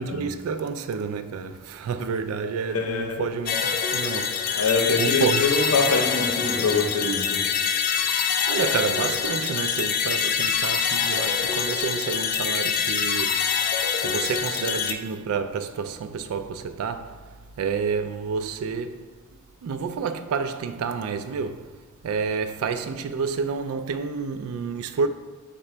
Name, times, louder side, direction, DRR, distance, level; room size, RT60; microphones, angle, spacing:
voice 1, 0.0-4.6 4.9-5.5 8.5-13.5 13.9-19.0 19.6-25.1, right 5 dB, 70° right, 0.3 m, -29 dB
voice 2, 2.7-3.2 4.5-7.4, left 4 dB, 80° left, 0.7 m, -24 dB
sound 1, 3.5-14.9, left 7 dB, 45° left, 0.3 m, -25 dB
4.8 x 2.2 x 4.3 m
head